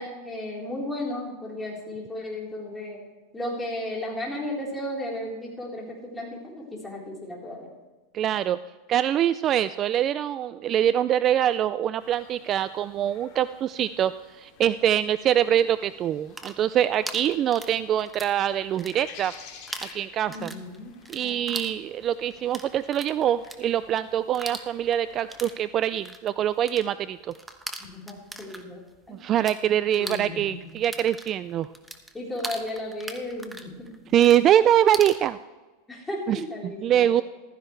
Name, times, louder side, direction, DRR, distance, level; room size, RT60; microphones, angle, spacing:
voice 1, 0.0-3.0 3.3-7.7 20.3-20.9 21.2-21.6 27.9-29.2 30.0-30.7 32.1-33.9 35.9-37.2, left 1 dB, 10° left, -3 dB, 4.1 m, -34 dB
voice 2, 8.1-8.6 8.9-19.3 19.9-20.5 21.1-27.3 29.2-31.7 34.1-35.4 36.3-36.4 36.8-37.2, right 10 dB, 35° right, 15 dB, 0.3 m, -24 dB
sound 1, 12.0-25.5, left 6 dB, 55° left, 2.8 m, -52 dB
sound 2, 16.1-18.4 18.7-19.4 19.7-29.6 29.9-35.2, right 2 dB, 5° right, 1.1 m, -40 dB
15.0 x 14.5 x 3.3 m, 1.2 s
supercardioid pair, 135°, 0 cm